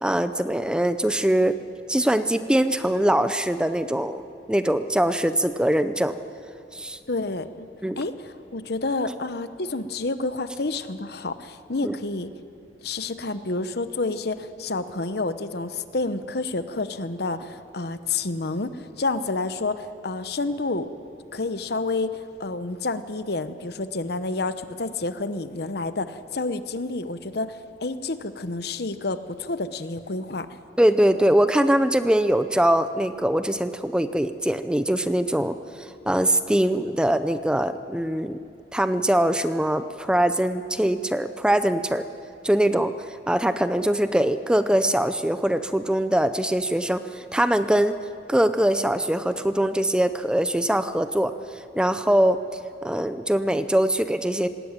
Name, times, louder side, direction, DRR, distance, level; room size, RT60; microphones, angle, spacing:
voice 1, 0.0-1.6 1.9-4.2 4.5-6.2 6.7-7.0 7.8-8.0 11.8-11.9 30.8-38.4 38.7-42.1 42.4-42.9 43.3-47.9 48.3-51.3 51.8-52.4 52.8-54.5, right 1 dB, 5° right, 10 dB, 0.5 m, -22 dB
voice 2, 7.1-7.7 8.0-12.3 12.8-20.9 21.3-30.5, left 3 dB, 60° left, 11 dB, 0.9 m, -29 dB
20.0 x 18.5 x 9.0 m, 2.5 s
head